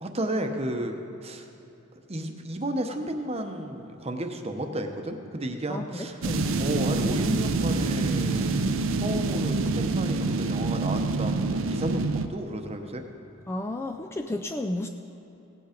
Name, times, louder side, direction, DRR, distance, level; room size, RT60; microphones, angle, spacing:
voice 1, 0.0-1.5 2.1-6.2 6.6-8.6 8.9-13.0, right 1 dB, 30° right, 5 dB, 0.8 m, -32 dB
voice 2, 5.7-6.5 13.5-14.9, left 1 dB, 10° left, 4 dB, 0.3 m, -32 dB
sound 1, 6.2-12.3, right 3 dB, 65° right, 0.6 m, -26 dB
17.0 x 8.2 x 5.1 m, 2.9 s
head